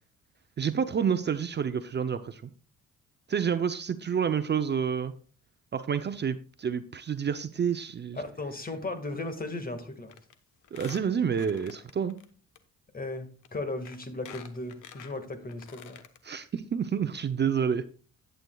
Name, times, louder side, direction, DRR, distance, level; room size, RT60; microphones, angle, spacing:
voice 1, 0.6-2.5 3.3-5.1 5.7-8.2 10.7-12.2 16.2-17.9, right 7 dB, 35° right, 10 dB, 0.6 m, -29 dB
voice 2, 8.1-10.1 12.9-16.0, left 2 dB, 30° left, 8 dB, 1.9 m, -36 dB
Squeak, 10.1-10.3 10.6-12.3 12.6-12.7 13.4-13.5 13.9-16.2 16.6-16.7 16.9-17.0, left 9 dB, 80° left, 1.2 m, -48 dB
11.5 x 9.1 x 2.3 m, 0.39 s
cardioid pair, 90°, 30 cm